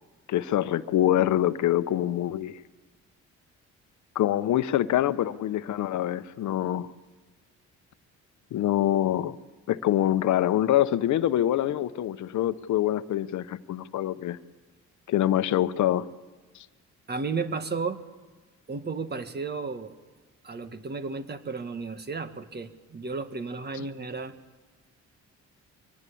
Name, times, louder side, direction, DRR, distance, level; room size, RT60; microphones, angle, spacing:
voice 1, 0.3-2.6 4.1-6.9 8.5-9.4 9.7-14.4 15.1-16.1 16.5-16.7, left 12 dB, 70° left, 13 dB, 0.9 m, -25 dB
voice 2, 17.1-18.0 18.7-19.9 20.4-24.3, right 4 dB, 35° right, 10 dB, 1.7 m, -33 dB
24.0 x 18.5 x 8.6 m, 1.3 s
cardioid pair, 90°, 30 cm